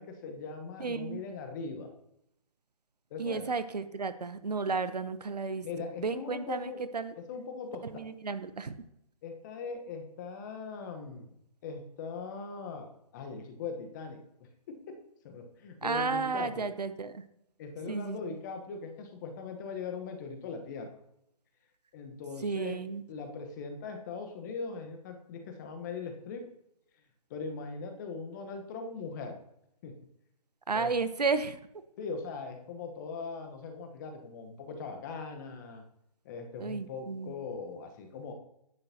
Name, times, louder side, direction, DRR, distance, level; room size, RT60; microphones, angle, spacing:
voice 1, 0.0-1.9 3.1-3.5 5.6-6.8 7.3-7.8 9.2-14.2 14.7-15.0 15.2-16.6 17.6-20.9 21.9-22.8 23.1-26.4 27.3-29.4 29.8-29.9 30.7-30.9 32.0-35.8 36.2-38.3, left 4 dB, 30° left, 5 dB, 1.2 m, -40 dB
voice 2, 0.8-1.2 3.2-7.1 7.8-8.8 15.8-17.2 17.9-18.2 22.4-23.0 30.7-31.6 36.6-37.3, right 4 dB, 80° right, 12 dB, 0.9 m, -33 dB
10.5 x 8.8 x 2.9 m, 0.79 s
figure-of-eight pair, 145°, 20 cm